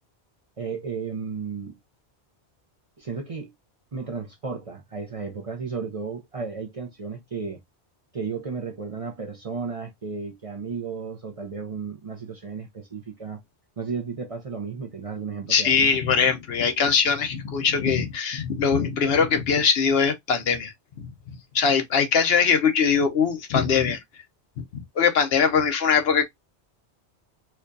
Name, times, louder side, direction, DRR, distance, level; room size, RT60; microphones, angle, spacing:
voice 1, 0.6-1.7 3.0-3.5 3.9-7.6 8.1-13.4 13.8-15.9, right 5 dB, 40° right, 0.6 m, -33 dB
voice 2, 15.5-21.1 21.5-24.0 24.6-26.2, left 6 dB, 65° left, 0.9 m, -22 dB
4.4 x 2.4 x 2.6 m
omnidirectional pair, 1.1 m